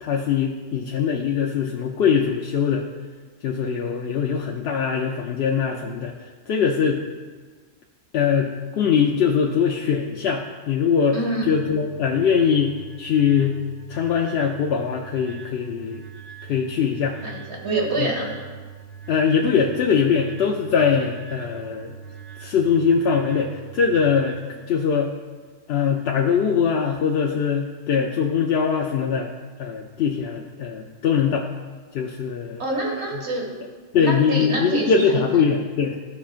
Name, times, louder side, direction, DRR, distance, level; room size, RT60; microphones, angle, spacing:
voice 1, 0.0-2.8 3.4-6.1 6.5-7.0 8.1-11.2 11.5-13.6 13.9-16.0 16.5-17.2 18.0-18.1 19.1-21.9 22.4-24.4 24.7-25.1 25.7-29.3 29.6-31.5 31.9-32.6 33.9-36.0, left 6 dB, 65° left, 1 dB, 0.8 m, -22 dB
voice 2, 11.1-11.5 17.2-18.3 32.6-33.5 34.0-35.2, right 2 dB, 60° right, -2 dB, 2.0 m, -26 dB
sound 1, 11.4-24.4, right 7 dB, 90° left, 2.0 m, -42 dB
14.0 x 5.8 x 2.5 m, 1.5 s
omnidirectional pair, 1.3 m